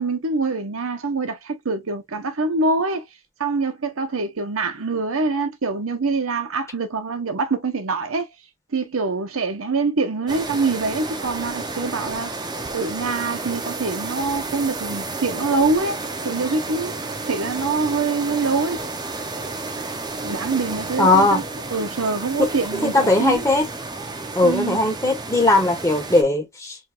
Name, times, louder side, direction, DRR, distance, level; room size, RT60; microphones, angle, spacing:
voice 1, 0.0-3.1 3.4-8.3 8.7-12.3 12.7-16.9 17.2-18.8 20.2-21.4 21.7-23.4 24.4-24.8, right 3 dB, 75° right, 0.9 m, -24 dB
sound 1, 10.3-26.2, right 3 dB, 20° right, 0.6 m, -31 dB
voice 2, 21.0-21.4 22.4-22.5 22.8-23.6 24.3-26.8, left 2 dB, 15° left, 1.5 m, -18 dB
4.5 x 3.2 x 2.4 m
head